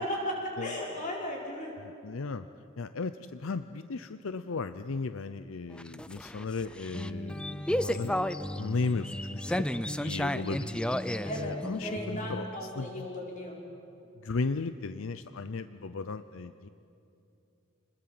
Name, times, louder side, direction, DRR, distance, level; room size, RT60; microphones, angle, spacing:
voice 1, 0.0-1.7 11.2-11.5 11.8-13.5, equal, 40° left, -2 dB, 5.8 m, -35 dB
voice 2, 1.8-2.5 2.8-9.7 9.9-12.5 12.8-13.1 14.2-16.7, left 4 dB, 80° left, 11 dB, 0.6 m, -36 dB
sound 1, 5.7-12.6, left 1 dB, 5° left, 0.5 m, -33 dB
28.5 x 20.5 x 7.7 m, 2.8 s
head